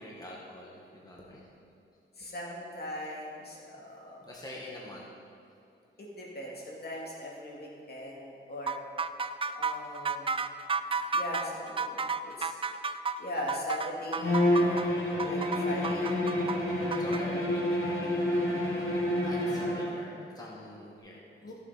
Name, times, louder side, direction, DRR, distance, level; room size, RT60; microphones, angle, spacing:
voice 1, 0.0-1.5 3.7-3.8 4.2-5.1 17.0-17.6 18.0-18.7 19.2-21.5, left 1 dB, 20° left, -4 dB, 1.8 m, -45 dB
voice 2, 2.2-4.3 6.0-8.8 9.5-10.6 11.1-12.5 13.2-14.9 15.2-16.2 21.4-21.5, left 1 dB, 50° left, -3 dB, 2.4 m, -39 dB
sound 1, 8.7-17.2, right 4 dB, 25° right, 0.4 m, -32 dB
Bowed string instrument, 14.2-20.0, left 1 dB, 90° left, 1.9 m, -28 dB
14.5 x 7.3 x 4.3 m, 2.7 s
cardioid pair, 75°, 20 cm